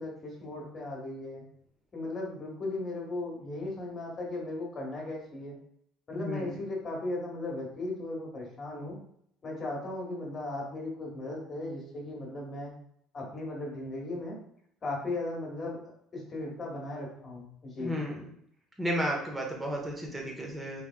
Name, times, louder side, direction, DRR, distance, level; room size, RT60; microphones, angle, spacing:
voice 1, 0.0-1.4 1.9-5.6 6.1-9.0 9.4-12.7 13.1-14.4 14.8-18.0, left 2 dB, 35° left, -2 dB, 1.4 m, -37 dB
voice 2, 6.1-6.5 17.8-18.3 18.8-20.8, equal, 10° right, -1 dB, 1.0 m, -33 dB
3.3 x 3.1 x 2.2 m, 0.69 s
supercardioid pair, 90°, 0 cm